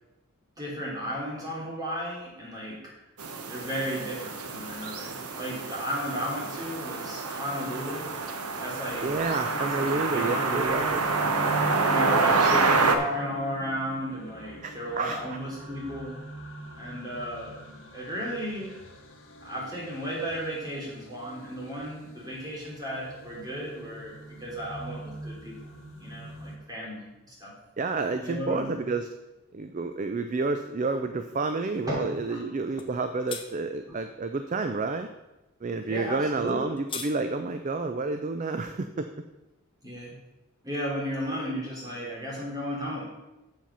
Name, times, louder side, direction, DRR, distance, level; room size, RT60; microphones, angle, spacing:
voice 1, 0.6-2.9 3.5-8.1 8.6-10.7 11.8-16.2 16.8-17.6 17.9-18.8 19.4-25.7 26.0-27.5 28.2-28.8 31.9-32.4 33.9-34.0 35.9-36.7 39.8-40.2 40.6-43.0, equal, 15° right, -5 dB, 2.9 m, -34 dB
sound 1, 3.2-13.0, right 4 dB, 85° right, 1.0 m, -27 dB
voice 2, 9.0-11.0 14.6-15.2 27.8-29.1 29.5-35.1 35.6-39.1, right 3 dB, 35° right, 8 dB, 0.4 m, -30 dB
sound 2, 9.6-26.6, right 1 dB, 60° left, 1.4 m, -43 dB
sound 3, 32.8-32.9 33.3-33.5 36.5-37.1, left 6 dB, 25° left, 0.7 m, -36 dB
7.4 x 7.4 x 5.5 m, 1.0 s
head